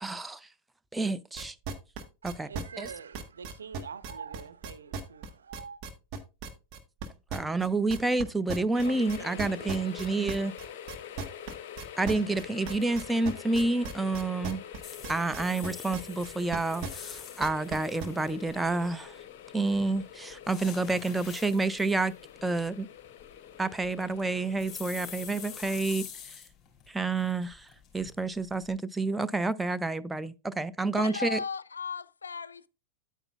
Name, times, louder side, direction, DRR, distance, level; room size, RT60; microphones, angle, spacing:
voice 1, 0.0-0.4 0.9-1.5 2.2-2.5 2.8-2.9 7.3-10.5 12.0-14.6 15.1-19.1 19.5-22.1 22.4-22.9 23.6-26.1 26.9-27.7 27.9-31.4, right 3 dB, 5° right, 0.4 m, -29 dB
sound 1, 1.4-8.2 8.5-18.0, right 5 dB, 40° right, 1.2 m, -37 dB
voice 2, 2.2-5.8 8.8-10.2, right 6 dB, 70° right, 0.5 m, -45 dB
sound 2, 8.7-25.8, left 9 dB, 50° left, 0.7 m, -46 dB
sound 3, 14.8-19.2 19.7-26.9 27.2-28.7, left 8 dB, 20° left, 3.2 m, -46 dB
voice 3, 31.0-32.7, left 5 dB, 75° left, 0.4 m, -36 dB
9.1 x 8.7 x 2.3 m
figure-of-eight pair, 90°, 0 cm